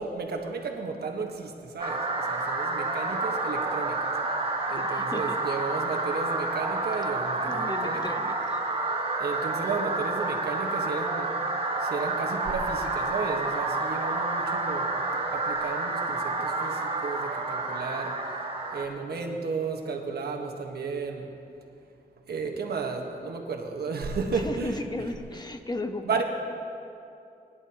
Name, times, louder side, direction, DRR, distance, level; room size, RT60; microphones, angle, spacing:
voice 1, 0.0-4.1 4.6-8.1 8.9-11.3 11.8-15.0 15.3-18.2 18.7-21.4 22.3-24.8 26.0-26.2, right 4 dB, 80° right, 2 dB, 1.4 m, -33 dB
sound 1, 1.8-18.9, right 2 dB, 35° right, 1.4 m, -29 dB
voice 2, 4.8-5.4 7.4-8.6 24.2-26.2, left 2 dB, 25° left, 6 dB, 1.0 m, -35 dB
21.5 x 10.5 x 3.0 m, 2.7 s
cardioid pair, 65°, 16 cm